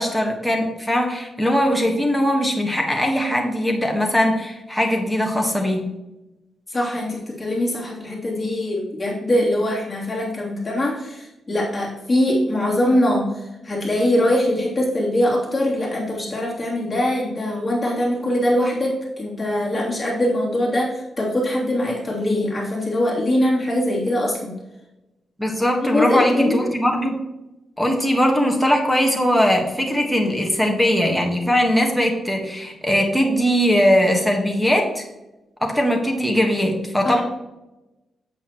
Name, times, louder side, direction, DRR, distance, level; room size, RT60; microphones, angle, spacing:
voice 1, 0.0-5.9 25.4-27.2 27.8-35.0 35.6-37.2, equal, ahead, 0 dB, 1.4 m, -20 dB
voice 2, 6.7-24.5 25.8-26.6 37.0-37.2, left 1 dB, 25° left, -5 dB, 3.1 m, -22 dB
8.3 x 7.8 x 3.1 m, 0.98 s
cardioid pair, 90°, 0 cm